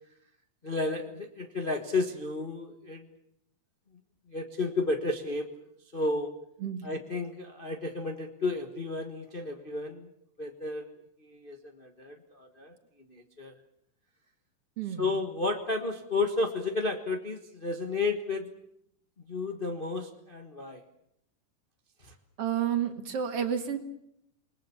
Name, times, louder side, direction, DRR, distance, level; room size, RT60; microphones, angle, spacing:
voice 1, 0.6-3.1 4.3-5.5 5.9-6.3 6.8-10.1 10.4-10.9 11.2-12.7 13.1-13.5 15.0-18.5 19.3-20.8 22.0-22.1, left 3 dB, 65° left, 4 dB, 0.5 m, -32 dB
voice 2, 14.8-15.1 22.4-23.8, right 9 dB, 50° right, 7 dB, 2.6 m, -30 dB
28.5 x 21.0 x 7.1 m, 0.74 s
omnidirectional pair, 3.6 m